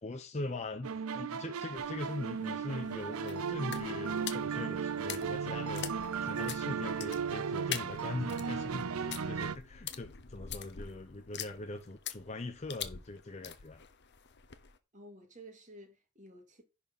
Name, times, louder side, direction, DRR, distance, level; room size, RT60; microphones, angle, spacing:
voice 1, 0.0-13.8, left 2 dB, 30° left, 0.8 m, -41 dB
sound 1, 0.8-9.6, right 6 dB, 85° right, 0.6 m, -36 dB
sound 2, 1.7-14.8, left 9 dB, 55° left, 1.0 m, -45 dB
voice 2, 14.9-16.6, right 1 dB, 35° right, 2.4 m, -52 dB
10.5 x 4.4 x 5.5 m
head